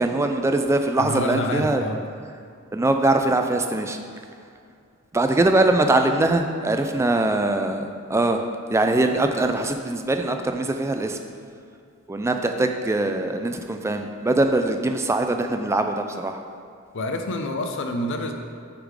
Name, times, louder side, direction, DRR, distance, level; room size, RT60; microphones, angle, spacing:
voice 1, 0.0-1.8 2.7-4.0 5.1-11.2 12.1-16.4, right 2 dB, 15° right, 5 dB, 0.3 m, -22 dB
voice 2, 1.0-2.0 16.9-18.3, left 1 dB, 60° left, 5 dB, 0.6 m, -27 dB
6.9 x 3.7 x 4.8 m, 2.3 s
head